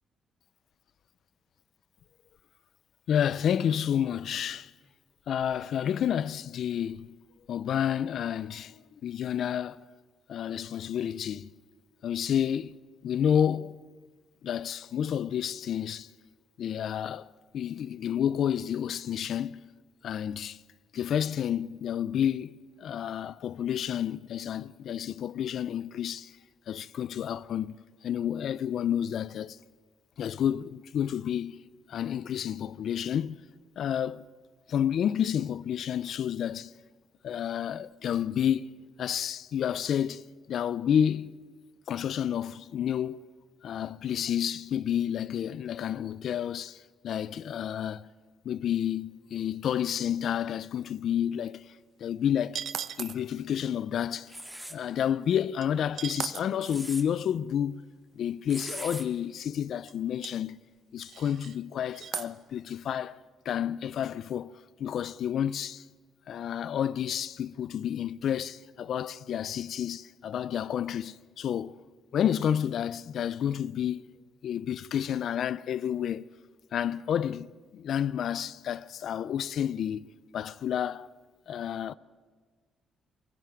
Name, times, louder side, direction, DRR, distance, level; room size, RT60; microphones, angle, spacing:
voice 1, 3.1-4.7 5.3-7.2 7.5-9.9 10.3-11.5 12.0-12.8 13.0-13.8 14.4-16.1 16.6-17.3 17.5-19.6 20.0-20.6 20.9-22.5 22.8-26.3 26.7-27.7 28.0-29.6 30.2-31.6 31.9-33.4 33.8-34.3 34.7-36.7 37.2-38.7 39.0-41.3 41.9-43.2 43.6-48.1 48.4-51.7 52.0-52.6 53.0-54.3 54.7-57.8 58.1-60.6 60.9-63.2 63.5-64.5 64.8-65.8 66.3-71.8 72.1-74.2 74.4-76.3 76.7-81.1 81.5-81.9, left 9 dB, 65° left, 0.5 m, -30 dB
sound 1, 52.6-53.2 55.6-55.7 55.9-56.4 59.0-59.1 59.4-59.5 59.9-60.0 60.2-60.3 61.1-61.6 61.9-62.3, right 9 dB, 65° right, 0.8 m, -36 dB
sound 2, 54.3-54.8 56.4-57.0 58.5-59.0, right 1 dB, 5° right, 1.9 m, -40 dB
22.5 x 14.5 x 9.2 m
cardioid pair, 90°, 0 cm